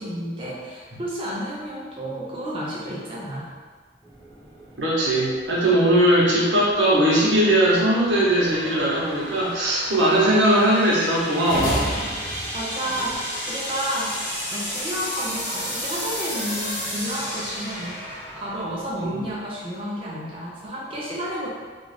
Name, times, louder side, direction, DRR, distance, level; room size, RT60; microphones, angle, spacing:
voice 1, 0.0-3.5 12.5-13.2 13.5-14.2 14.5-21.5, equal, 30° right, -6 dB, 0.4 m, -31 dB
sound 1, 4.0-19.4, equal, 10° left, 0.8 m, -34 dB
voice 2, 4.8-11.8 19.0-19.2, right 1 dB, 85° right, -6 dB, 0.9 m, -19 dB
sound 2, 11.5-13.7, equal, 60° left, 0.7 m, -30 dB
2.4 x 2.3 x 3.2 m, 1.5 s
head